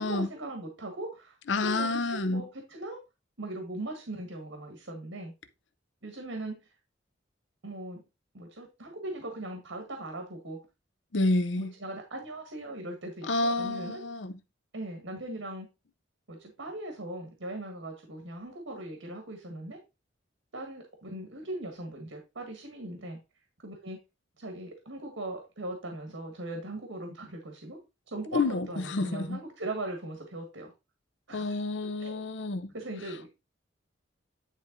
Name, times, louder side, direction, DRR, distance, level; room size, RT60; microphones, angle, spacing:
voice 1, 0.0-1.4 1.6-3.0 3.4-5.3 6.0-6.6 7.6-8.0 8.3-10.6 11.6-14.0 14.7-15.7 16.3-19.8 20.5-23.2 23.6-24.0 24.4-27.8 28.1-30.7 31.3-31.6 32.0-32.2 32.7-33.3, right 1 dB, 85° right, 1.7 m, -39 dB
voice 2, 1.5-2.4 11.1-11.7 13.2-14.3 28.3-29.4 31.3-32.7, left 2 dB, 70° left, 0.7 m, -29 dB
10.0 x 3.4 x 3.9 m
head